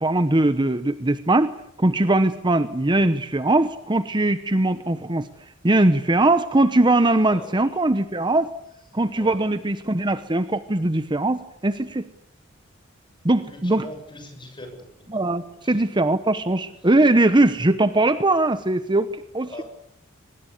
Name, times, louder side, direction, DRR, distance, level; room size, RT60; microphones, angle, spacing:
voice 1, 0.0-5.3 5.6-8.5 8.9-12.1 13.2-13.8 15.1-19.6, right 2 dB, 20° right, 12 dB, 1.0 m, -21 dB
voice 2, 7.0-7.6 9.1-9.5 13.4-15.2 15.6-15.8 16.8-16.9 19.5-19.6, left 1 dB, 25° left, 6 dB, 7.2 m, -42 dB
24.5 x 21.0 x 8.3 m, 0.79 s
head